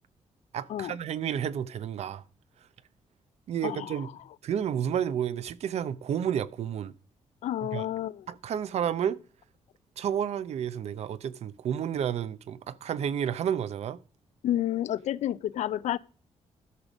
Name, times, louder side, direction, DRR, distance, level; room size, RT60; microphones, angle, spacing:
voice 1, 0.5-2.2 3.5-4.1 4.4-6.9 7.6-7.8 8.3-9.2 10.0-14.0, right 9 dB, 65° right, 0.6 m, -31 dB
voice 2, 3.6-4.1 7.4-8.3 14.4-16.0, left 12 dB, 80° left, 0.4 m, -30 dB
12.5 x 5.1 x 6.1 m
wide cardioid pair, 140°, 12 cm